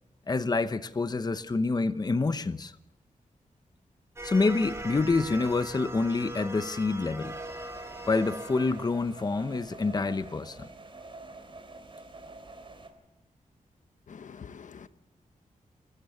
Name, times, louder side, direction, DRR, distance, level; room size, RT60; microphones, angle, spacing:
voice 1, 0.3-2.7 4.2-7.4 8.1-10.7, left 3 dB, 30° left, 0.9 m, -27 dB
sound 1, 4.2-9.6, right 1 dB, 20° right, 2.9 m, -40 dB
sound 2, 7.2-12.9, right 2 dB, 35° right, 3.4 m, -47 dB
voice 2, 14.1-14.9, left 6 dB, 65° left, 0.9 m, -45 dB
28.5 x 13.5 x 7.2 m
wide cardioid pair, 115°, 14 cm